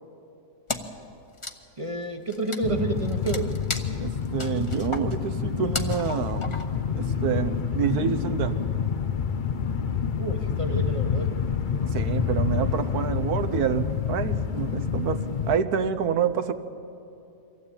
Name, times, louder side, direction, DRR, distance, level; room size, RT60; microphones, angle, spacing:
Wood, 0.7-1.0 1.3-6.9, left 2 dB, 20° left, 0.9 m, -35 dB
voice 1, 1.8-3.5 10.2-11.3, right 3 dB, 25° right, 6 dB, 0.9 m, -30 dB
sound 1, 2.6-15.6, left 6 dB, 60° left, 0.5 m, -28 dB
voice 2, 4.0-6.6 6.9-8.6 11.9-16.5, right 7 dB, 70° right, 10 dB, 1.4 m, -27 dB
24.0 x 15.5 x 8.7 m, 2.8 s
omnidirectional pair, 1.7 m